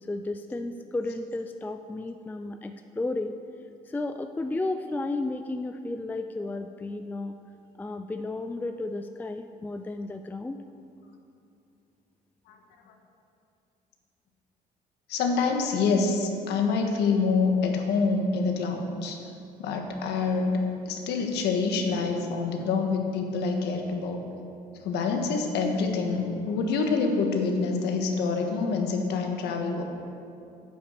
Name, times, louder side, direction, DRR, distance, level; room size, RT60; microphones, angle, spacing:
voice 1, 0.1-3.3 3.9-7.4 7.8-10.6, left 2 dB, 10° left, 7 dB, 0.4 m, -33 dB
voice 2, 15.1-19.2 19.6-20.6 20.9-24.2 24.8-29.8, left 4 dB, 80° left, 3 dB, 1.5 m, -26 dB
9.5 x 8.9 x 6.6 m, 2.6 s
cardioid pair, 110°, 17 cm